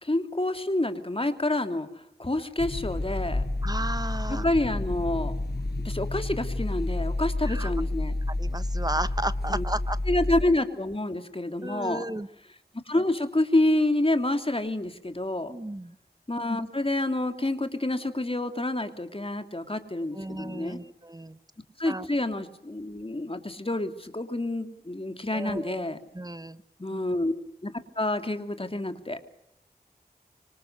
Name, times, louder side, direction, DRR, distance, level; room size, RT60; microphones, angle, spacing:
voice 1, 0.0-1.9 2.2-3.4 4.3-5.4 5.8-8.1 9.5-9.6 10.1-12.0 12.9-15.5 16.3-20.8 21.8-26.0 26.8-27.3 27.6-29.2, left 1 dB, 35° left, 8 dB, 2.9 m, -28 dB
sound 1, 2.6-10.4, left 2 dB, 75° left, 6.1 m, -30 dB
voice 2, 3.6-4.5 7.4-7.7 8.4-10.0 11.6-12.3 15.5-16.0 20.1-21.4 21.8-22.1 25.3-25.9 26.1-26.6 26.9-27.0, right 1 dB, 25° right, 14 dB, 1.3 m, -34 dB
26.0 x 25.5 x 6.7 m, 0.76 s
wide cardioid pair, 55°, 17 cm